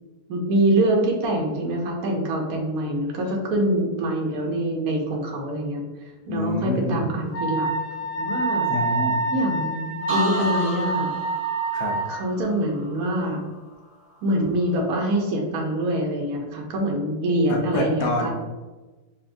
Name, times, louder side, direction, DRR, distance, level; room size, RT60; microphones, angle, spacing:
voice 1, 0.3-5.8 6.3-7.7 8.2-8.7 9.3-11.1 12.1-13.4 14.2-18.3, right 1 dB, 65° right, 0 dB, 1.1 m, -24 dB
voice 2, 6.3-7.1 8.6-9.2 11.7-11.9 17.5-18.3, left 2 dB, 65° left, -1 dB, 1.1 m, -27 dB
Wind instrument woodwind instrument, 7.3-12.2, right 2 dB, 10° right, 0.6 m, -26 dB
sound 1, 10.1-13.9 14.3-14.7, right 1 dB, 40° right, 0.9 m, -35 dB
5.4 x 2.5 x 2.5 m, 1.2 s
omnidirectional pair, 1.8 m